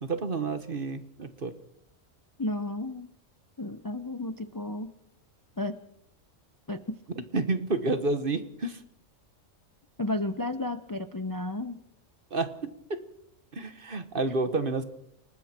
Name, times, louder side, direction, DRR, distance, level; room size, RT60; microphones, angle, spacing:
voice 1, 0.0-1.5 7.3-8.8 12.3-13.0 13.5-14.8, right 3 dB, 45° right, 10 dB, 1.5 m, -30 dB
voice 2, 2.4-3.1 3.6-4.9 5.6-5.8 6.7-7.0 10.0-11.8, left 1 dB, 20° left, 10 dB, 0.6 m, -32 dB
29.5 x 19.5 x 4.4 m, 0.78 s
omnidirectional pair, 1.4 m